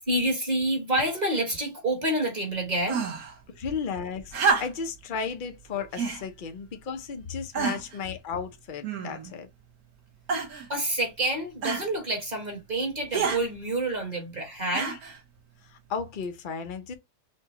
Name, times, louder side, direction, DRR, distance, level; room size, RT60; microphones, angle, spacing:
voice 1, 0.1-3.0 10.7-14.9, right 1 dB, 30° right, 1.2 m, -28 dB
sound 1, 2.9-3.3 4.3-5.0 5.9-6.2 7.0-7.1 7.5-8.0 8.8-9.4 10.3-10.7 11.6-11.9 13.1-13.4 14.7-15.2 16.2-16.3, right 5 dB, 65° right, 1.5 m, -28 dB
voice 2, 3.5-9.5 14.8-15.0 15.6-16.9, left 6 dB, 75° left, 0.4 m, -34 dB
6.2 x 2.2 x 2.9 m
omnidirectional pair, 1.8 m